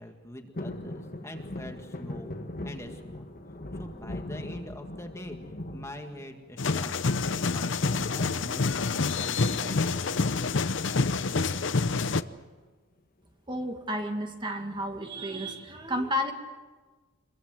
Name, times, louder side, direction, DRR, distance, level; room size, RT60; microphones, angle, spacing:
voice 1, 0.0-2.3 2.6-3.3 3.7-5.4 5.7-8.7 9.1-10.1, left 1 dB, 15° left, 4 dB, 1.9 m, -44 dB
sound 1, 0.5-6.7 7.2-7.8 9.0-9.5 9.7-9.8 10.1-10.4 11.2-12.2 12.6-12.7, left 1 dB, 45° left, 1.6 m, -40 dB
sound 2, 6.6-12.2, left 4 dB, 65° left, 0.8 m, -27 dB
voice 2, 13.5-16.3, equal, 25° right, 4 dB, 1.9 m, -32 dB
26.5 x 22.5 x 7.7 m, 1.4 s
head